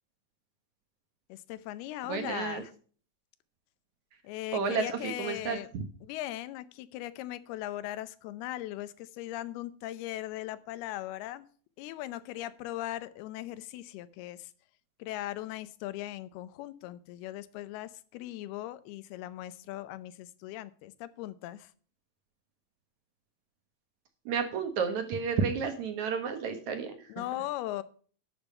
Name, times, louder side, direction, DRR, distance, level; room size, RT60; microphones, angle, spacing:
voice 1, 1.3-2.7 4.2-5.7 6.0-11.5 11.8-14.5 15.0-21.7 27.1-27.8, left 14 dB, 90° left, 15 dB, 2.7 m, -39 dB
voice 2, 2.1-2.6 4.5-5.8 24.3-27.1, right 6 dB, 60° right, 7 dB, 2.3 m, -31 dB
12.5 x 7.2 x 5.5 m, 0.43 s
omnidirectional pair, 4.4 m